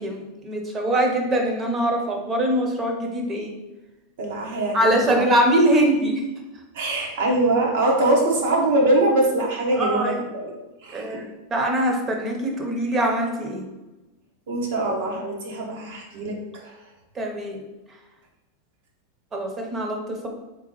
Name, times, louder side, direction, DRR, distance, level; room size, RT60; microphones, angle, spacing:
voice 1, 0.0-3.5 4.7-6.2 9.7-10.2 10.9-13.7 17.1-17.6 19.3-20.3, right 1 dB, 25° right, 2 dB, 0.8 m, -23 dB
voice 2, 4.2-5.2 6.7-10.5 10.8-11.2 14.5-16.8, right 2 dB, 70° right, -1 dB, 1.0 m, -23 dB
3.6 x 2.9 x 3.1 m, 1.1 s
hypercardioid pair, 100°, 0 cm